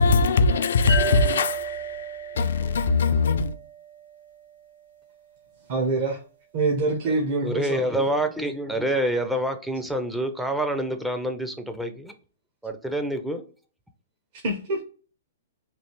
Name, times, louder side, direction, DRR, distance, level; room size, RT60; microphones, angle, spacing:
voice 1, 0.0-3.5, left 4 dB, 75° left, 0.4 m, -21 dB
sound 1, 0.9-4.3, right 3 dB, 90° right, 1.5 m, -32 dB
voice 2, 5.7-6.2 6.5-7.9 14.4-14.8, right 3 dB, 45° right, 0.7 m, -25 dB
voice 3, 7.4-12.1 12.6-13.4, right 1 dB, 5° right, 0.4 m, -27 dB
3.2 x 2.4 x 2.9 m
hypercardioid pair, 140°, 0 cm